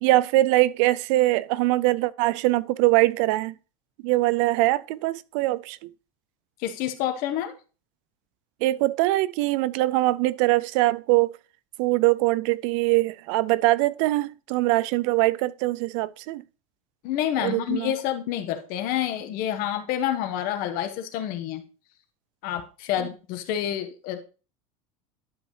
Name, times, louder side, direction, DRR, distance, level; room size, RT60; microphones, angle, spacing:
voice 1, 0.0-3.5 4.0-5.8 8.6-11.4 11.8-16.4 17.4-17.9, right 18 dB, 70° right, 0.4 m, -22 dB
voice 2, 6.6-7.5 17.0-21.6 22.4-24.2, left 11 dB, 60° left, 1.4 m, -28 dB
11.5 x 5.2 x 3.3 m
supercardioid pair, 120°, 17 cm